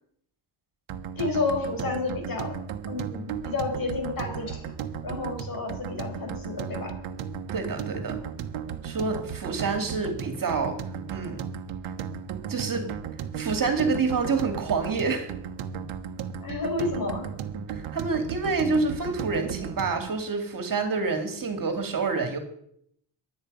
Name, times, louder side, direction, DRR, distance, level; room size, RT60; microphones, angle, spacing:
sound 1, 0.9-20.1, right 7 dB, 80° right, 1.3 m, -35 dB
voice 1, 1.2-2.5 2.9-4.7 5.0-6.9 16.4-17.3, left 3 dB, 45° left, 2 dB, 5.3 m, -30 dB
voice 2, 7.5-8.2 8.8-10.8 11.1-11.4 12.5-12.9 13.4-15.3 17.7-22.4, right 4 dB, 45° right, 6 dB, 2.3 m, -27 dB
22.0 x 8.5 x 5.4 m, 0.69 s
cardioid pair, 120°, 47 cm